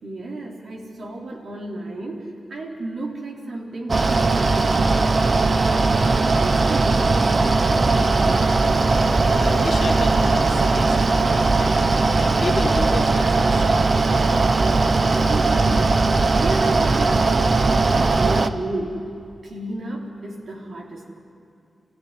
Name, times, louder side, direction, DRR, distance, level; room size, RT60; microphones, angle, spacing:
voice 1, 0.0-5.5 5.9-8.6 14.7-16.0 16.4-19.1 19.4-21.2, right 2 dB, 70° right, -1 dB, 3.9 m, -32 dB
Mechanical fan, 3.9-18.5, right 3 dB, 40° right, 0.9 m, -19 dB
voice 2, 9.3-11.8 12.2-13.8, left 3 dB, 55° left, 0 dB, 2.7 m, -31 dB
28.0 x 16.0 x 9.8 m, 2.5 s
wide cardioid pair, 130°, 0 cm